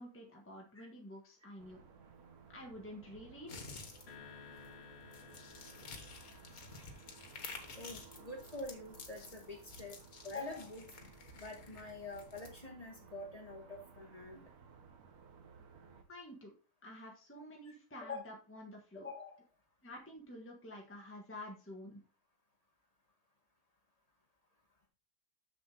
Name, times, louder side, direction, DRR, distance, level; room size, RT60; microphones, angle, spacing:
voice 1, 0.0-1.8 2.5-3.6 16.1-16.5 16.8-19.1 19.8-22.0, left 1 dB, 10° left, 0 dB, 1.5 m, -50 dB
sound 1, 1.6-16.0, right 6 dB, 80° right, 1.6 m, -59 dB
sound 2, 3.5-12.5, left 4 dB, 70° left, 1.8 m, -52 dB
sound 3, 4.1-8.5, left 8 dB, 45° left, 1.7 m, -58 dB
voice 2, 7.7-10.0 10.2-10.9 11.4-14.5 18.0-18.2 19.0-19.3, left 2 dB, 25° left, 0 dB, 1.8 m, -46 dB
7.1 x 6.8 x 4.0 m, 0.35 s
omnidirectional pair, 1.6 m